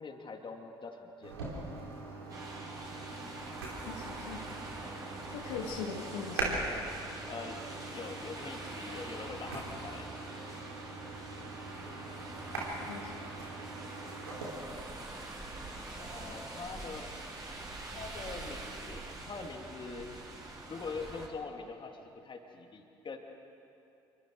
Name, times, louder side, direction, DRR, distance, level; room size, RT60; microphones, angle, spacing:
voice 1, 0.0-1.4 7.3-7.6 7.9-10.2 16.0-17.1 17.9-20.1 20.7-23.2, left 4 dB, 40° left, 3 dB, 2.7 m, -43 dB
sound 1, 1.2-14.5, right 2 dB, 85° right, 3.5 m, -42 dB
sound 2, 2.3-21.3, right 2 dB, 30° right, 6.5 m, -45 dB
voice 2, 3.8-4.4 5.3-6.6 12.9-13.4, left 6 dB, 75° left, 0 dB, 2.0 m, -41 dB
27.5 x 23.5 x 4.8 m, 2.8 s
hypercardioid pair, 50°, 13 cm